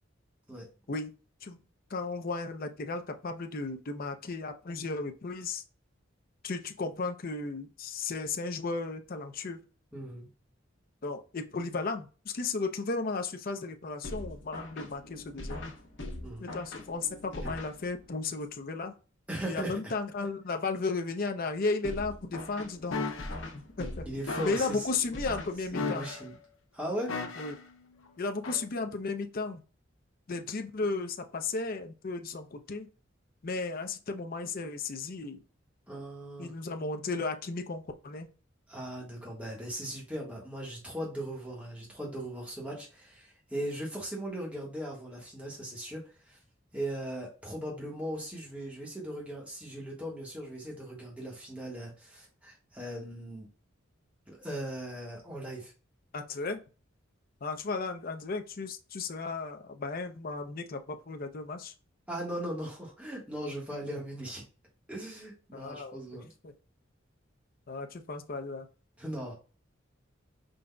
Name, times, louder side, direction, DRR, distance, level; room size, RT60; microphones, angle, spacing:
voice 1, 1.9-5.6 6.4-9.6 11.0-15.6 16.4-18.9 19.5-23.0 23.5-24.0 24.4-26.1 27.4-27.6 28.2-29.6 30.3-32.9 33.4-35.4 36.4-38.3 56.1-56.6 57.4-61.7 65.5-66.5 67.7-68.7, left 3 dB, 45° left, 6 dB, 0.5 m, -35 dB
voice 2, 9.9-10.3 16.2-16.4 17.4-17.5 19.3-19.9 24.0-24.9 25.7-26.4 26.7-27.1 35.9-36.5 38.7-46.4 46.7-53.5 54.3-55.7 62.1-64.4 64.9-66.3 69.0-69.3, right 1 dB, 5° right, -4 dB, 1.4 m, -38 dB
sound 1, 14.0-18.2 21.8-26.0, left 1 dB, 60° left, 1.0 m, -42 dB
sound 2, 22.9-23.4 24.3-24.8 25.7-26.4 27.1-27.7 28.4-28.6, left 3 dB, 85° left, 0.7 m, -35 dB
4.8 x 3.9 x 2.2 m, 0.34 s
head